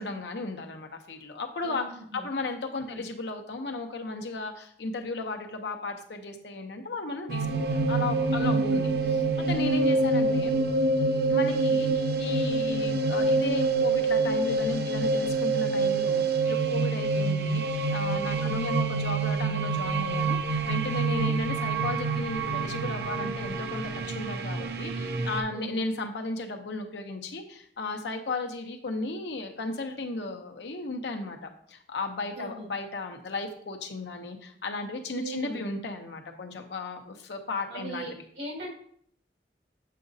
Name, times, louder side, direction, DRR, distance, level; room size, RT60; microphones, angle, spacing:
voice 1, 0.0-1.8 2.1-8.9 9.5-10.6 11.3-38.1, left 3 dB, 75° left, 4 dB, 0.8 m, -35 dB
voice 2, 1.6-2.2 2.9-3.0 8.3-8.8 18.4-18.6 21.0-21.3 25.5-25.7 32.4-32.7 35.1-35.6 37.7-38.1 38.4-38.7, right 1 dB, 85° right, -4 dB, 1.9 m, -37 dB
sound 1, 7.3-25.4, right 3 dB, 60° right, 0.5 m, -26 dB
7.5 x 4.8 x 2.7 m, 0.63 s
head